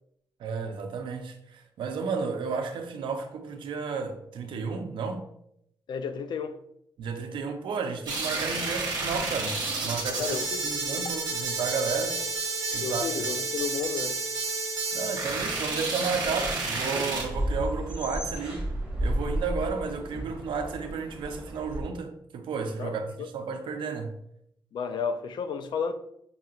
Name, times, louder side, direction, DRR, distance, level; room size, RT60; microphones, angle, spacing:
voice 1, 0.4-5.2 7.0-12.2 12.7-13.1 14.9-18.7 19.0-24.1, right 5 dB, 75° right, 0.6 m, -32 dB
voice 2, 5.9-6.6 10.2-10.6 12.8-14.2 22.8-23.3 24.7-25.9, left 6 dB, 65° left, 0.4 m, -32 dB
sound 1, 8.1-17.2, right 3 dB, 55° right, 1.1 m, -30 dB
sound 2, 16.2-21.8, right 1 dB, 10° right, 1.1 m, -33 dB
5.5 x 2.8 x 2.4 m
wide cardioid pair, 155°, 8 cm